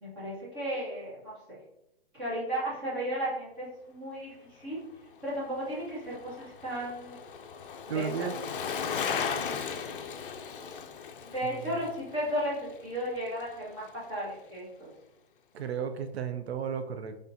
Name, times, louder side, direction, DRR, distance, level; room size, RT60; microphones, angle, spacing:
voice 1, 0.0-1.3 2.1-4.8 5.2-7.2 7.9-8.3 9.3-9.7 11.2-14.9, equal, 20° right, -8 dB, 1.5 m, -34 dB
Bicycle, 5.2-13.6 13.9-14.0, left 6 dB, 60° left, 0.5 m, -37 dB
voice 2, 7.9-8.3 11.6-11.7 15.5-17.1, right 7 dB, 90° right, 8 dB, 0.5 m, -33 dB
3.8 x 3.3 x 2.7 m, 0.86 s
hypercardioid pair, 175°, 31 cm